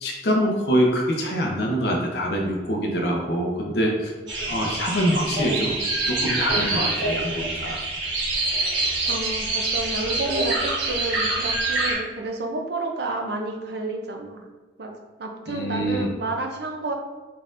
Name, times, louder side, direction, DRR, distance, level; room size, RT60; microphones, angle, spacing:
voice 1, 0.0-4.1 4.5-5.7 6.1-7.8 15.5-16.1, equal, 60° left, 0 dB, 0.8 m, -24 dB
sound 1, 4.3-11.9, right 2 dB, 80° right, 1.4 m, -25 dB
voice 2, 9.1-14.4 14.8-14.9 15.2-16.9, right 2 dB, 65° right, 3 dB, 0.6 m, -30 dB
4.1 x 3.8 x 2.5 m, 1.3 s
head